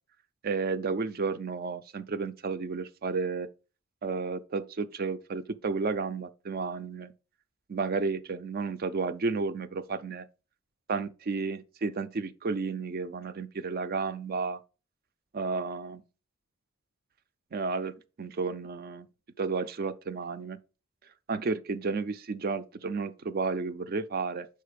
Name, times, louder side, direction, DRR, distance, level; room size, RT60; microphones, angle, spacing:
voice 1, 0.4-3.5 4.0-7.1 7.7-10.2 10.9-14.6 15.3-16.0 17.5-17.9 18.2-19.1 19.4-20.6 21.3-24.5, right 4 dB, 45° right, 0.4 m, -32 dB
5.5 x 4.4 x 5.0 m
head